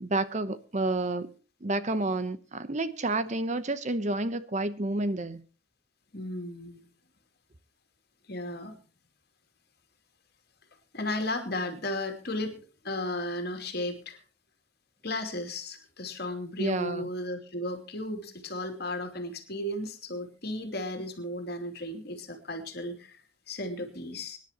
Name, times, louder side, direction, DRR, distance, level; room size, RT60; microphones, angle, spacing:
voice 1, 0.0-1.3 1.6-5.4 16.6-17.1, right 2 dB, 35° right, 0.8 m, -30 dB
voice 2, 6.1-6.8 8.3-8.8 10.9-14.2 15.0-23.2 23.5-24.4, left 1 dB, 50° left, 2.8 m, -35 dB
24.5 x 11.0 x 2.9 m
head